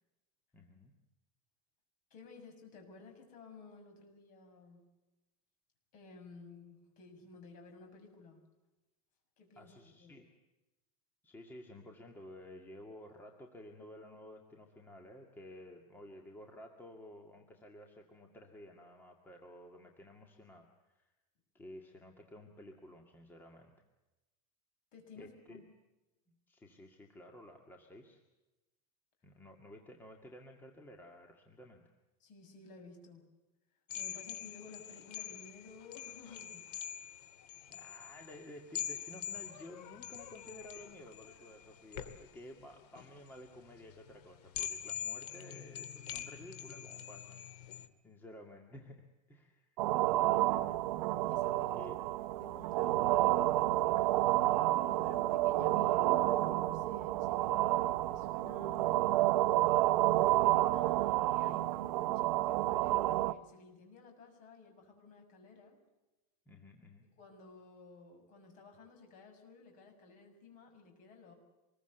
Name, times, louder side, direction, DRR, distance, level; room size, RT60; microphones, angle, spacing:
voice 1, 0.5-0.9 9.6-10.3 11.2-21.0 21.5-23.8 25.1-25.6 26.5-28.2 29.2-31.8 37.7-47.4 48.0-49.7 50.3-50.8 51.7-52.0 52.8-53.0 60.2-60.8 66.5-67.1, left 1 dB, 10° left, 2 dB, 2.0 m, -53 dB
voice 2, 2.1-4.8 5.9-8.4 9.4-10.2 24.9-25.6 32.2-33.3 33.9-36.7 51.3-52.0 52.4-54.2 54.6-59.1 60.7-65.8 67.2-71.3, left 4 dB, 40° left, 5 dB, 6.9 m, -55 dB
sound 1, 33.9-47.9, left 10 dB, 80° left, 2.5 m, -45 dB
sound 2, 49.8-63.3, right 16 dB, 75° right, 1.0 m, -30 dB
26.5 x 21.5 x 8.0 m, 1.0 s
supercardioid pair, 165°, 20 cm